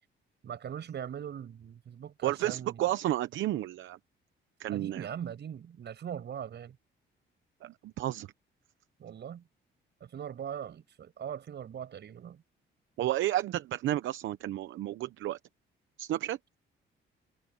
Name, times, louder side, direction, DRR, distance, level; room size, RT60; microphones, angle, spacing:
voice 1, 0.4-2.9 4.7-6.8 9.0-9.4 10.0-12.4, right 9 dB, 60° right, 7.4 m, -40 dB
voice 2, 2.2-4.0 4.6-5.1 7.6-8.3 13.0-15.4 16.0-16.4, right 14 dB, 75° right, 0.9 m, -31 dB
cardioid pair, 90°, 20 cm